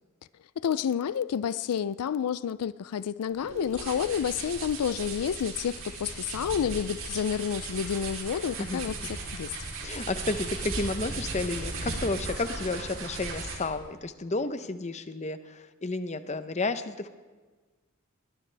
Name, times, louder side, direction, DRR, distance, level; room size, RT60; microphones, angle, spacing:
voice 1, 0.6-8.9 9.3-9.5, left 8 dB, 85° left, 0.4 m, -29 dB
sound 1, 3.4-13.8, right 3 dB, 60° right, 3.4 m, -37 dB
voice 2, 9.8-17.1, left 3 dB, 30° left, 0.7 m, -32 dB
20.5 x 19.0 x 3.4 m
head